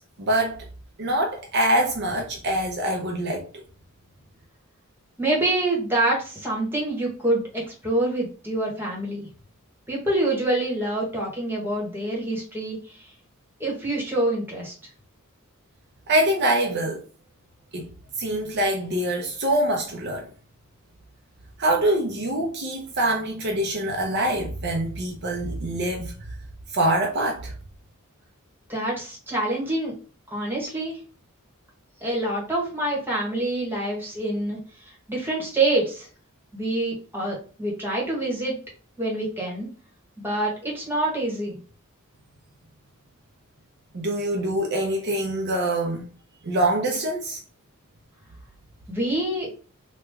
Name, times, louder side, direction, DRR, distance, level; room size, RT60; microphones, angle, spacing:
voice 1, 0.2-0.6 1.0-3.6 16.1-17.0 17.7-17.9 18.2-20.3 21.6-26.1 26.7-27.5 43.9-46.1 46.4-47.4, right 1 dB, 50° right, 0.5 m, -24 dB
voice 2, 5.2-9.3 9.9-13.1 13.6-14.7 28.7-29.9 30.3-31.0 32.0-34.6 34.8-36.1 36.5-38.5 39.0-39.7 40.2-41.6 48.9-49.5, right 2 dB, 10° right, 1.2 m, -26 dB
3.0 x 2.2 x 3.4 m
head